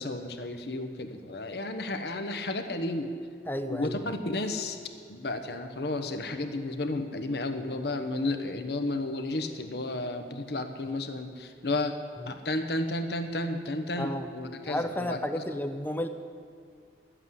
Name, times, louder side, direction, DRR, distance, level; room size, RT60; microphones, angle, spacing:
voice 1, 0.0-3.1 3.7-4.8 5.1-11.9 12.3-15.4, left 2 dB, 60° left, 6 dB, 1.0 m, -32 dB
voice 2, 3.5-4.1 14.0-14.3 14.7-16.1, left 1 dB, 10° left, 8 dB, 0.5 m, -32 dB
11.5 x 8.1 x 9.5 m, 2.2 s
head